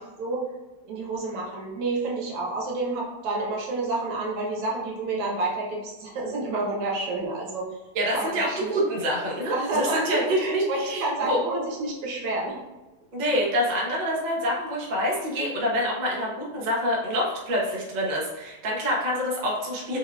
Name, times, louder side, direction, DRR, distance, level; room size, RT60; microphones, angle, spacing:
voice 1, 0.9-7.7 8.1-8.7 9.5-12.6, right 2 dB, 90° right, -3 dB, 2.0 m, -29 dB
voice 2, 7.9-11.4 13.1-20.0, equal, 50° right, -3 dB, 0.5 m, -26 dB
4.9 x 3.8 x 2.4 m, 1.1 s
omnidirectional pair, 2.4 m